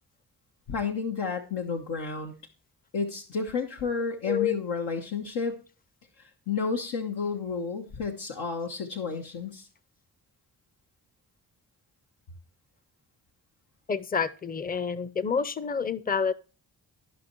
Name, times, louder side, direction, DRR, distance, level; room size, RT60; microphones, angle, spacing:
voice 1, 0.7-2.4 2.9-5.6 6.2-9.7, left 5 dB, 75° left, 2 dB, 1.1 m, -31 dB
voice 2, 13.9-16.3, left 6 dB, 20° left, 16 dB, 0.6 m, -28 dB
13.5 x 5.6 x 3.1 m, 0.35 s
supercardioid pair, 50°, 41 cm